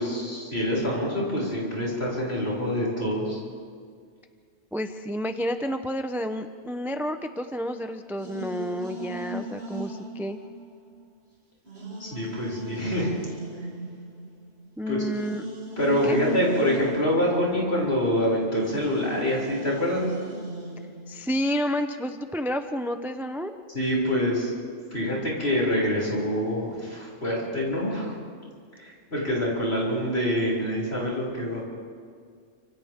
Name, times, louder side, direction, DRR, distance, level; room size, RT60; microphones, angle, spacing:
voice 1, 0.0-3.4 12.0-13.1 14.9-15.0 15.8-20.1 23.7-24.5 24.9-28.1 28.8-31.7, equal, 55° left, -4 dB, 7.0 m, -26 dB
voice 2, 4.7-10.4 14.8-15.4 16.0-16.2 21.1-23.6, equal, ahead, 7 dB, 0.6 m, -30 dB
sound 1, 8.2-11.2 11.6-18.2 18.6-21.3, equal, 55° right, 3.4 m, -38 dB
29.5 x 27.0 x 3.7 m, 2.1 s
omnidirectional pair, 1.3 m